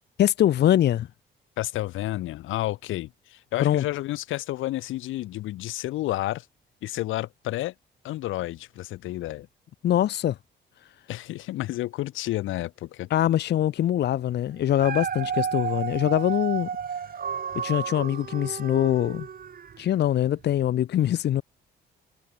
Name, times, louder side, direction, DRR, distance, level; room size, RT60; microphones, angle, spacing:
voice 1, 0.2-1.1 3.6-3.8 9.8-10.4 13.1-16.7 17.6-19.3 19.8-21.4, left 11 dB, 60° left, 0.6 m, -23 dB
voice 2, 1.6-6.5 6.8-7.7 8.0-9.4 11.1-13.1, left 16 dB, 85° left, 1.0 m, -31 dB
Dog, 14.6-19.9 20.4-20.5, right 7 dB, 45° right, 3.5 m, -32 dB
cardioid pair, 90°, 20 cm